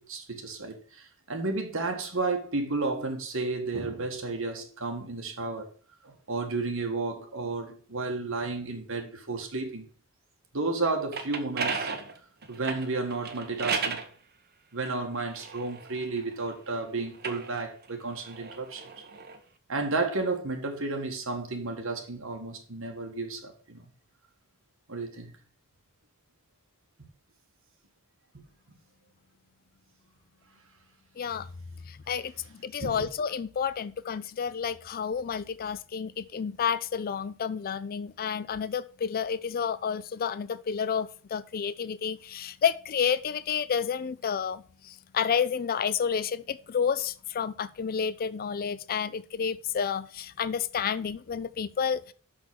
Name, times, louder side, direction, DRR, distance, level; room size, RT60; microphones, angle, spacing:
voice 1, 0.0-5.7 6.0-9.9 10.5-11.9 12.5-14.0 14.7-18.9 19.7-23.9 24.9-25.3 32.8-33.1, right 3 dB, 65° right, 1.9 m, -32 dB
sound 1, 10.9-14.1 14.9-16.5 17.1-19.4, right 5 dB, 50° right, 1.2 m, -35 dB
voice 2, 31.2-31.5 31.9-32.3 32.6-52.1, left 7 dB, 45° left, 0.4 m, -30 dB
6.1 x 6.1 x 7.0 m
head